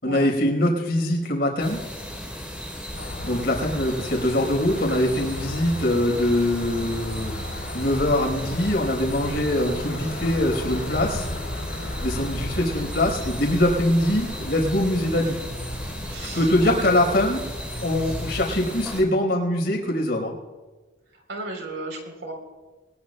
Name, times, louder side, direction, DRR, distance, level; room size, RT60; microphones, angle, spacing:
voice 1, 0.0-1.8 3.2-7.3 7.7-11.3 12.0-15.4 16.3-17.4 17.8-20.3, left 1 dB, 60° left, 0 dB, 4.4 m, -23 dB
sound 1, 1.6-19.0, equal, 5° right, 3.4 m, -36 dB
sound 2, 2.9-18.6, left 1 dB, 80° left, 2.9 m, -35 dB
voice 2, 16.1-17.0 21.3-22.3, right 2 dB, 75° right, 3 dB, 3.5 m, -34 dB
22.5 x 19.5 x 2.2 m, 1.2 s
head